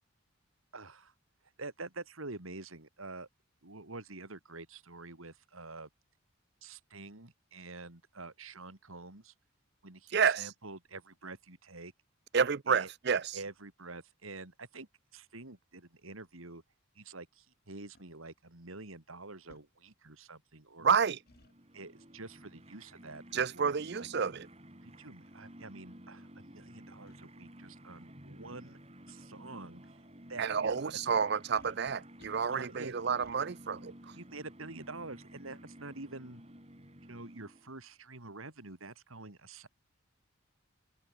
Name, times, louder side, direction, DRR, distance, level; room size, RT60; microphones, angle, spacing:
voice 1, 0.7-1.1 1.6-3.3 3.6-5.9 6.6-9.3 9.8-11.9 12.7-12.9 13.3-16.6 16.9-21.0 21.7-24.1 24.8-28.8 29.1-30.9 32.5-32.9 34.1-36.4 37.0-39.7, right 3 dB, 75° right, 3.0 m, -47 dB
voice 2, 10.1-10.5 12.3-13.4 20.8-21.2 23.3-24.5 30.4-33.9, right 6 dB, 50° right, 0.5 m, -29 dB
sound 1, 17.9-18.1 19.5-19.7 21.3-21.5 23.3-23.5 24.3-24.4 25.2-25.3 25.6-25.7 27.1-27.2 28.5-28.7 29.1-29.2 30.7-30.9 31.6-32.7 33.2-33.4, left 1 dB, 45° left, 3.3 m, -61 dB
sound 2, 21.2-37.9, equal, 30° right, 6.4 m, -53 dB
open air
head